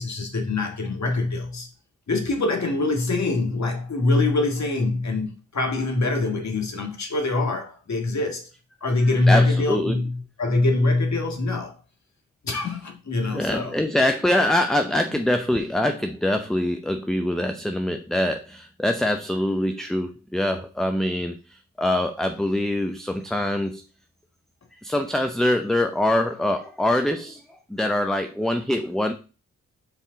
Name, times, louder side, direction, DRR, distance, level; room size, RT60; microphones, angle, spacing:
voice 1, 0.0-1.7 2.1-8.4 8.8-11.7 12.4-13.8, left 2 dB, 55° left, 1.9 m, -24 dB
voice 2, 9.3-10.0 13.3-23.8 24.8-27.4 27.7-29.1, left 1 dB, ahead, 0.6 m, -24 dB
5.4 x 5.2 x 3.9 m
cardioid pair, 55°, 33 cm